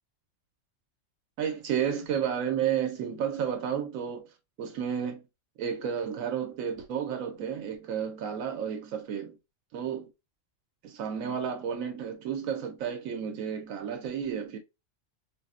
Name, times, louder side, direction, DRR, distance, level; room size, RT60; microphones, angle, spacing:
voice 1, 1.4-4.2 4.6-5.2 5.6-9.4 9.7-10.1 10.8-14.6, right 8 dB, 85° right, 1.0 m, -32 dB
3.9 x 2.0 x 2.3 m
omnidirectional pair, 1.4 m